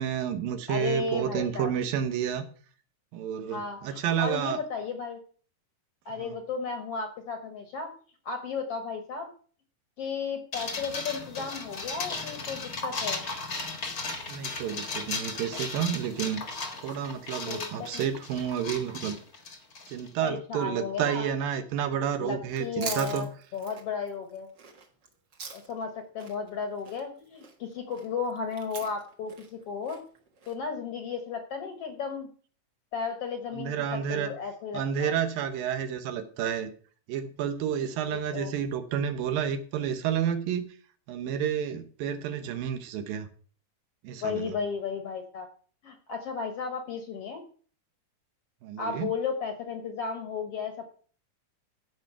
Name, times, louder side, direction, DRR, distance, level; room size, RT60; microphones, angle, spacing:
voice 1, 0.0-2.4 3.1-4.6 6.2-6.4 14.3-16.4 16.8-19.2 19.9-23.3 33.5-34.3 34.7-36.7 37.1-40.6 41.1-43.3 44.0-44.6 48.6-49.1, right 8 dB, 85° right, 9 dB, 2.8 m, -30 dB
voice 2, 0.7-1.7 3.5-5.2 6.1-7.9 8.3-9.3 10.0-13.2 17.5-18.1 20.2-21.3 22.2-24.5 25.5-30.0 30.5-32.3 32.9-35.1 38.1-38.5 44.2-45.5 45.8-47.4 48.8-50.9, left 5 dB, 60° left, 6 dB, 1.8 m, -34 dB
sound 1, 10.5-20.1, left 3 dB, 40° left, 1.3 m, -36 dB
Chewing mastication, 22.4-25.9 26.2-30.5, right 5 dB, 45° right, 1.5 m, -43 dB
14.5 x 5.3 x 5.7 m, 0.43 s
omnidirectional pair, 4.0 m